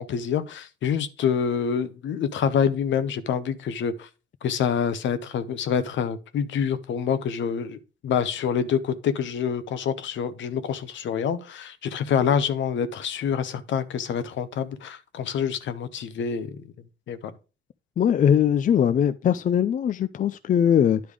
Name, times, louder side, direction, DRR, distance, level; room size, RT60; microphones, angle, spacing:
voice 1, 0.0-4.1 4.4-16.5 17.1-17.3, left 7 dB, 70° left, 0.8 m, -26 dB
voice 2, 18.0-21.0, left 9 dB, 40° left, 0.4 m, -21 dB
10.0 x 3.4 x 4.9 m
cardioid pair, 90°, 20 cm